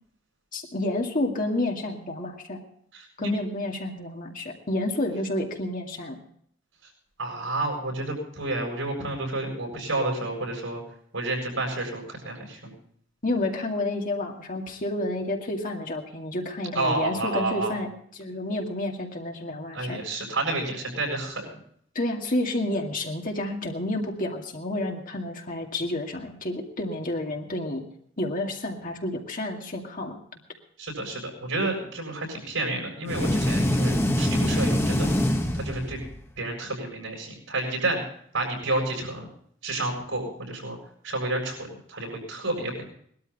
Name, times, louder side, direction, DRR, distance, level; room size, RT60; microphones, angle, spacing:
voice 1, 0.5-2.6 3.2-6.2 13.2-20.0 22.0-27.8 28.2-30.2, left 1 dB, 45° left, 1 dB, 2.2 m, -30 dB
voice 2, 7.2-10.8 11.1-12.7 16.7-17.7 19.7-21.5 30.8-35.1 35.5-36.0 36.4-38.0 38.3-39.3 39.6-40.8 41.0-41.6 41.9-42.8, right 2 dB, 80° right, 0 dB, 7.4 m, -30 dB
sound 1, 33.1-36.2, left 1 dB, 15° left, 1.2 m, -24 dB
20.0 x 12.5 x 4.1 m, 0.64 s
head